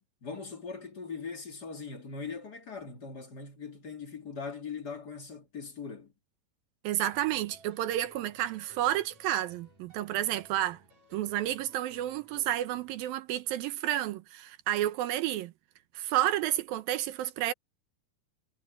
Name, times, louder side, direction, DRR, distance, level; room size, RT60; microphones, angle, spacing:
voice 1, 0.0-6.1, left 5 dB, 30° left, 2.4 m, -41 dB
voice 2, 6.8-10.8 11.1-15.5 15.9-17.5, right 13 dB, 75° right, 2.6 m, -31 dB
sound 1, 7.1-13.1, right 3 dB, 45° right, 7.5 m, -58 dB
omnidirectional pair, 4.3 m